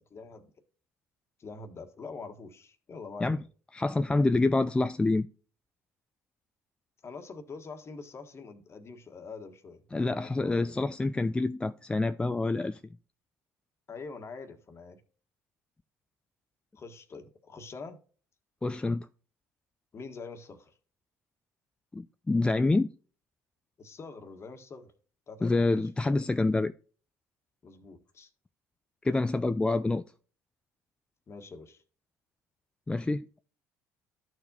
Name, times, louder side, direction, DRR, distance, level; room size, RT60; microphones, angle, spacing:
voice 1, 0.1-0.5 1.4-3.4 7.0-9.8 10.1-10.9 13.9-15.0 16.8-18.0 19.9-20.7 23.8-24.9 25.3-26.3 27.6-28.3 31.3-31.8, left 4 dB, 35° left, 1.4 m, -45 dB
voice 2, 3.7-5.3 9.9-12.8 18.6-19.1 21.9-22.9 25.4-26.7 29.0-30.0 32.9-33.4, left 2 dB, 15° left, 0.3 m, -27 dB
13.5 x 4.6 x 2.7 m
hypercardioid pair, 60°, 7 cm